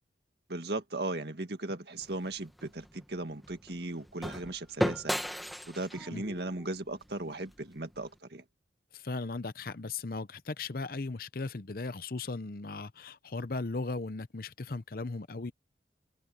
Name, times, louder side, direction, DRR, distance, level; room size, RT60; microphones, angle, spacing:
voice 1, 0.5-5.1 5.7-8.4, right 2 dB, 65° right, 1.9 m, -37 dB
sound 1, 2.0-8.1, equal, ahead, 1.9 m, -37 dB
voice 2, 8.9-15.5, left 3 dB, 55° left, 0.8 m, -37 dB
open air
head